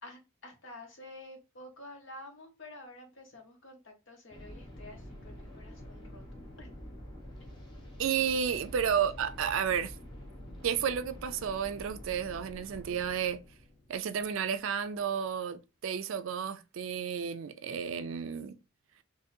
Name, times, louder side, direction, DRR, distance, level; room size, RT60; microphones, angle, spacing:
voice 1, 0.0-6.2 6.6-6.7 8.9-9.1, left 1 dB, 60° left, 1.2 m, -50 dB
sound 1, 4.3-15.1, equal, 20° left, 1.0 m, -48 dB
voice 2, 8.0-9.9 10.6-13.4 13.9-18.6, right 7 dB, 65° right, 0.4 m, -32 dB
3.7 x 2.7 x 2.6 m
head